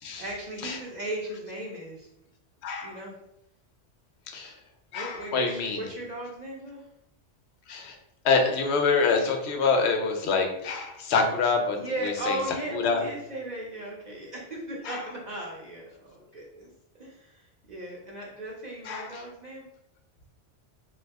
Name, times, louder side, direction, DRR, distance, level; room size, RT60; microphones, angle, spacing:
voice 1, 0.2-2.1 2.8-3.2 4.9-6.9 11.8-16.7 17.0-19.7, right 1 dB, 50° right, -3 dB, 0.5 m, -37 dB
voice 2, 2.6-3.0 4.3-4.6 4.9-5.9 7.7-8.0 8.2-12.4 12.7-13.0 14.8-15.0 18.8-19.2, left 4 dB, 70° left, 4 dB, 0.8 m, -26 dB
2.7 x 2.2 x 3.4 m, 0.83 s
omnidirectional pair, 1.2 m